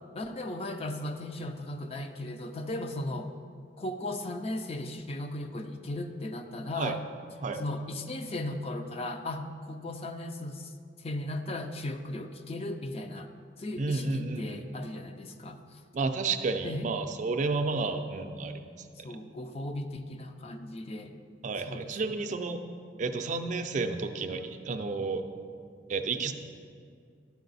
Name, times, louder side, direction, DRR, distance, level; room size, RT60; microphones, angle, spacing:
voice 1, 0.1-3.3 3.8-7.0 7.5-10.7 11.0-13.3 13.6-15.8 16.6-16.9 19.0-21.1 21.7-22.1, left 1 dB, 35° left, 7 dB, 0.4 m, -36 dB
voice 2, 13.8-14.6 15.9-18.7 21.4-22.6 23.0-25.2 25.9-26.3, right 3 dB, 45° right, 7 dB, 0.4 m, -31 dB
11.5 x 4.8 x 4.0 m, 2.2 s
head